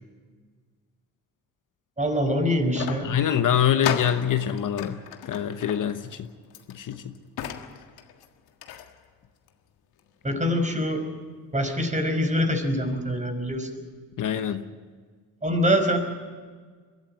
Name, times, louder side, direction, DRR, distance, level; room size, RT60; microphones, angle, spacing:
voice 1, 2.0-3.1 10.2-11.0 11.5-13.8 15.4-16.0, equal, 20° right, 5 dB, 5.2 m, -24 dB
sound 1, 2.7-8.9 9.5-9.6 10.0-10.1, left 9 dB, 75° left, 1.7 m, -35 dB
voice 2, 3.0-5.0 5.3-6.3 6.7-7.1 10.3-10.4 14.2-14.7, left 9 dB, 55° left, 9 dB, 1.1 m, -25 dB
22.0 x 13.5 x 9.8 m, 1.5 s
supercardioid pair, 65°, 38 cm